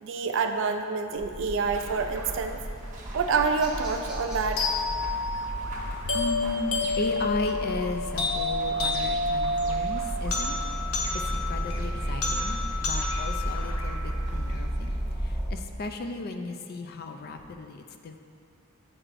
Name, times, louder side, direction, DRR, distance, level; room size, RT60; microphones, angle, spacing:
voice 1, 0.0-2.6 3.1-4.7, right 4 dB, 55° right, 6 dB, 0.3 m, -27 dB
sound 1, 1.2-15.5, right 1 dB, 5° right, 0.7 m, -34 dB
sound 2, 1.6-14.5, right 1 dB, 35° right, 0.7 m, -44 dB
sound 3, 4.6-14.6, left 2 dB, 75° left, 0.7 m, -30 dB
voice 2, 5.7-10.6 10.9-18.2, left 2 dB, 45° left, 6 dB, 0.3 m, -36 dB
8.7 x 4.7 x 2.5 m, 2.5 s
head